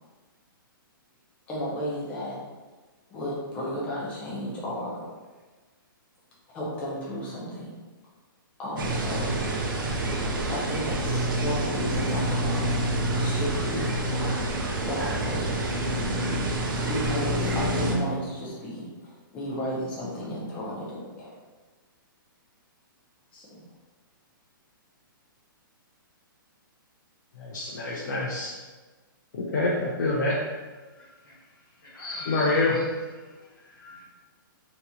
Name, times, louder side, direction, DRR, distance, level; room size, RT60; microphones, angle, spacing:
voice 1, 1.5-2.4 3.1-5.1 6.5-7.8 8.6-9.4 10.5-12.7 13.2-13.8 14.1-14.4 14.8-15.5 16.8-21.3 23.3-23.5, equal, 10° left, -6 dB, 0.5 m, -33 dB
sound 1, 8.8-17.9, right 1 dB, 70° right, 0.6 m, -27 dB
voice 2, 27.4-28.5 29.5-30.3 32.3-32.7, left 2 dB, 55° left, -5 dB, 0.6 m, -26 dB
voice 3, 30.9-31.4 31.8-32.8 33.4-34.1, left 2 dB, 85° left, -4 dB, 1.4 m, -39 dB
3.9 x 2.9 x 2.3 m, 1.3 s
hypercardioid pair, 175°, 12 cm